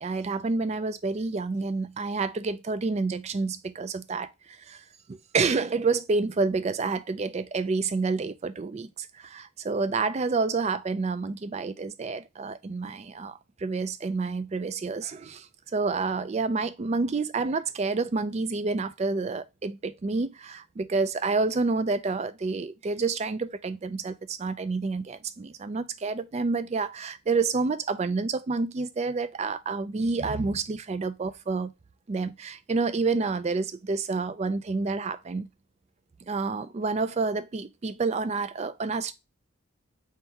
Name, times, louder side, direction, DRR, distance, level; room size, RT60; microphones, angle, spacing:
voice 1, 0.0-31.7 32.1-35.5 36.3-39.1, right 4 dB, 30° right, 0.3 m, -29 dB
4.3 x 3.6 x 2.8 m
head